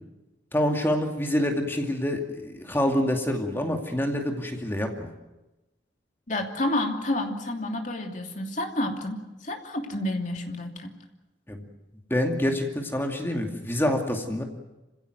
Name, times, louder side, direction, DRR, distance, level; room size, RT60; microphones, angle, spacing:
voice 1, 0.5-5.1 11.5-11.6 12.1-14.4, left 1 dB, 10° left, 3 dB, 2.4 m, -26 dB
voice 2, 6.3-10.9, left 1 dB, 45° left, 3 dB, 2.8 m, -30 dB
27.0 x 16.5 x 9.3 m, 1.0 s
head